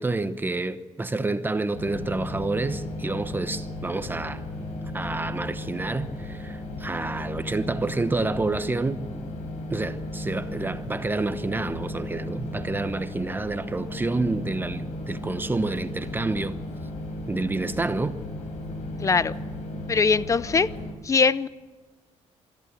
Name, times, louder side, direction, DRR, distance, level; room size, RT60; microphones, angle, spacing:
voice 1, 0.0-4.4 4.9-9.0 9.7-16.6 17.3-18.2, right 2 dB, 15° right, 0.9 m, -28 dB
sound 1, 1.7-20.9, left 1 dB, 75° left, 4.8 m, -35 dB
voice 2, 19.0-19.3 19.9-20.7 21.0-21.5, left 5 dB, 25° left, 0.6 m, -21 dB
24.0 x 14.0 x 9.2 m
cardioid pair, 115°, 12 cm